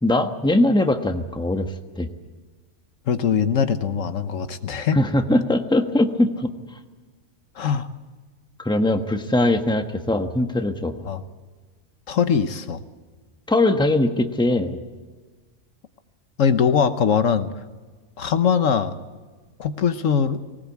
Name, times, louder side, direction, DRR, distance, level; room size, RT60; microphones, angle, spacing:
voice 1, 0.0-2.1 4.9-6.5 8.6-10.9 13.5-14.8, left 1 dB, 5° left, 6 dB, 1.2 m, -21 dB
voice 2, 3.0-5.0 7.5-7.9 11.1-11.2 12.1-12.8 16.4-17.5 18.2-19.0 19.6-20.4, left 7 dB, 85° left, 10 dB, 1.4 m, -21 dB
19.5 x 19.0 x 8.5 m, 1.4 s
omnidirectional pair, 1.3 m